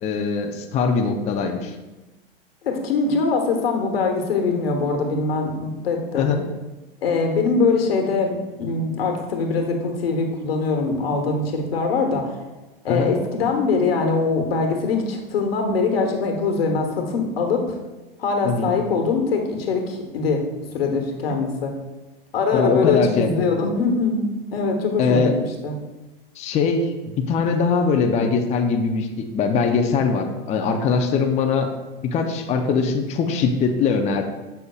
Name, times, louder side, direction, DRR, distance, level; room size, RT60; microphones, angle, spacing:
voice 1, 0.0-1.7 6.1-6.4 12.9-13.1 18.4-18.7 22.5-23.5 25.0-25.3 26.4-31.7 32.0-34.2, left 5 dB, 25° left, 4 dB, 0.5 m, -21 dB
voice 2, 2.6-6.3 7.0-12.3 12.8-17.8 18.2-20.4 20.7-21.7 22.3-25.3 25.6-25.7, left 4 dB, 85° left, 3 dB, 1.2 m, -22 dB
7.9 x 5.6 x 2.3 m, 1.1 s
hypercardioid pair, 115°, 29 cm